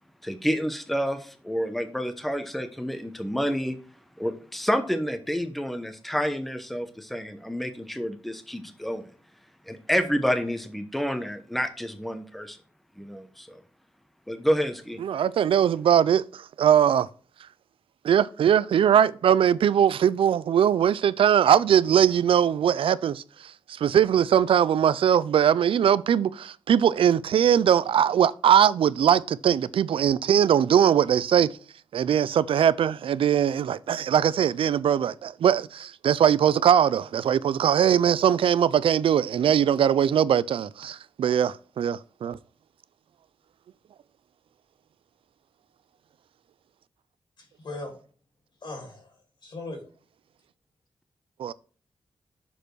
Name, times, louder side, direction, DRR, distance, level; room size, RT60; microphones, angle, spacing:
voice 1, 0.2-3.8 4.2-9.1 9.7-12.6 13.0-13.6 14.3-15.0, equal, ahead, 0.9 m, -29 dB
voice 2, 15.0-17.1 18.0-23.2 23.8-31.5 31.9-42.4 51.4-51.5, right 9 dB, 80° right, 0.4 m, -21 dB
voice 3, 47.4-48.0 48.6-49.8, left 2 dB, 60° left, 3.0 m, -39 dB
6.8 x 5.0 x 4.6 m
wide cardioid pair, 105°, 9 cm